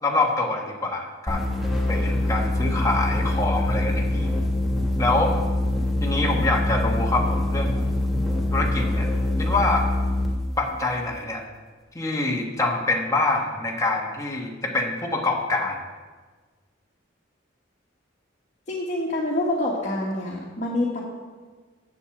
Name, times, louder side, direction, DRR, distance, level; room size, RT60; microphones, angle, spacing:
voice 1, 0.0-1.5 1.9-4.3 5.0-5.3 6.0-7.8 8.5-9.1 9.4-9.9 10.6-11.4 11.9-15.8, left 2 dB, 15° left, -1 dB, 1.3 m, -25 dB
sound 1, 1.3-10.4, left 1 dB, ahead, 1.4 m, -24 dB
voice 2, 18.7-21.0, left 1 dB, 35° left, -4 dB, 1.5 m, -26 dB
8.1 x 7.3 x 7.1 m, 1.4 s
head